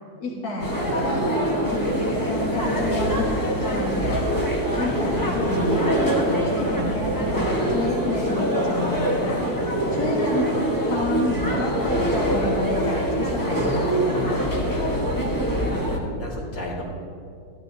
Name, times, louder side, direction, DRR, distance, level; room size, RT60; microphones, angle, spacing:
voice 1, 0.2-4.2 4.7-5.9 6.3-9.4 9.9-14.5, left 2 dB, 55° left, -4 dB, 2.0 m, -29 dB
sound 1, 0.6-16.0, right 1 dB, 15° left, 0.9 m, -24 dB
voice 2, 4.9-5.3 15.6-16.8, left 1 dB, 75° left, -5 dB, 2.6 m, -35 dB
13.5 x 12.0 x 2.7 m, 2.4 s
omnidirectional pair, 2.0 m